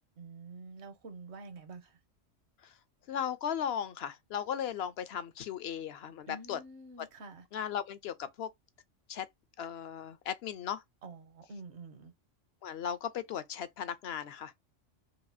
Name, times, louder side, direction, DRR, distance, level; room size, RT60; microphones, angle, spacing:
voice 1, 0.2-2.0 6.3-7.5 11.0-12.1, right 3 dB, 65° right, 1.2 m, -48 dB
voice 2, 3.1-6.6 7.5-8.5 9.1-9.3 9.6-10.8 12.6-14.5, left 9 dB, 65° left, 0.7 m, -36 dB
4.7 x 2.4 x 2.6 m
omnidirectional pair, 1.2 m